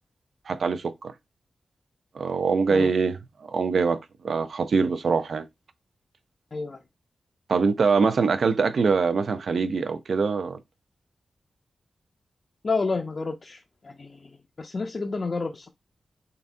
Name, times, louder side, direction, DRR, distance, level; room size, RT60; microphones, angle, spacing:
voice 1, 0.5-1.1 2.1-3.2 3.5-4.0 4.2-5.4 7.5-10.6, right 5 dB, 65° right, 0.5 m, -23 dB
voice 2, 12.6-14.3 14.6-15.7, left 4 dB, 40° left, 0.4 m, -30 dB
3.9 x 2.6 x 3.3 m
wide cardioid pair, 135°, 0 cm